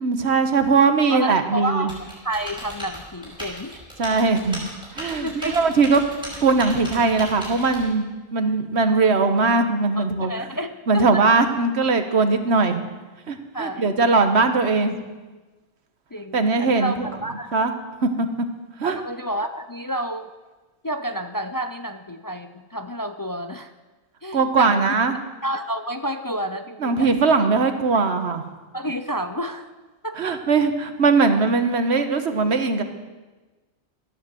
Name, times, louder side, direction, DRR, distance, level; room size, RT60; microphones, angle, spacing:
voice 1, 0.0-1.9 4.0-6.0 6.4-10.3 10.9-12.8 13.3-15.0 16.3-17.1 17.5-17.7 18.0-18.3 18.8-19.0 24.3-25.2 26.8-28.4 30.2-32.8, right 4 dB, 75° right, 8 dB, 1.4 m, -20 dB
voice 2, 1.1-3.8 5.2-5.6 10.0-11.2 13.5-13.9 16.1-17.5 18.8-20.3 20.8-23.7 24.2-24.8 25.4-27.1 28.7-29.7 30.0-30.4, right 1 dB, 25° left, 8 dB, 0.5 m, -30 dB
Typing, 1.9-7.9, equal, 5° right, 5.5 m, -37 dB
14.5 x 10.0 x 7.7 m, 1.2 s
omnidirectional pair, 1.1 m